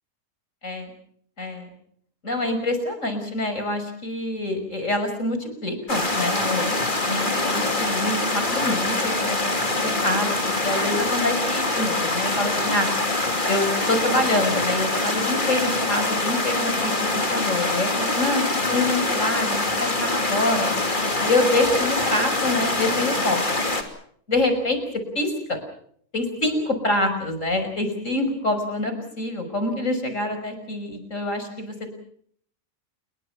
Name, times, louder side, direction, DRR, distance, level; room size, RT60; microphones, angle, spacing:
voice 1, 1.4-1.7 2.2-6.8 7.0-10.4 10.6-12.9 13.5-18.4 18.7-20.7 21.2-23.6 24.3-24.8 25.1-25.6 26.1-31.9, left 2 dB, 55° left, 8 dB, 6.2 m, -26 dB
sound 1, 5.9-23.8, left 2 dB, 30° left, 3.0 m, -24 dB
28.5 x 22.5 x 5.9 m, 0.63 s
omnidirectional pair, 1.6 m